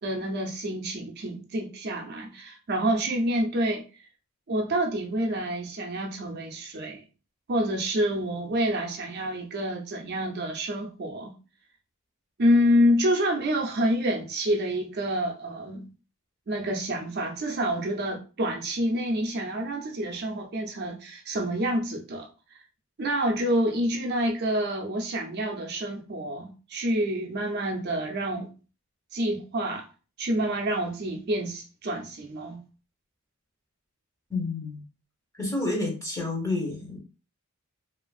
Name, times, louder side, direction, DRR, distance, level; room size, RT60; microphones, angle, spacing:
voice 1, 0.0-3.8 4.5-7.0 7.5-11.3 12.4-15.9 16.5-22.3 23.0-28.5 29.1-29.9 30.2-32.6, equal, 45° right, 0.4 m, -27 dB
voice 2, 34.3-34.8 35.3-37.0, left 2 dB, 15° left, 0.8 m, -29 dB
2.8 x 2.4 x 2.3 m
head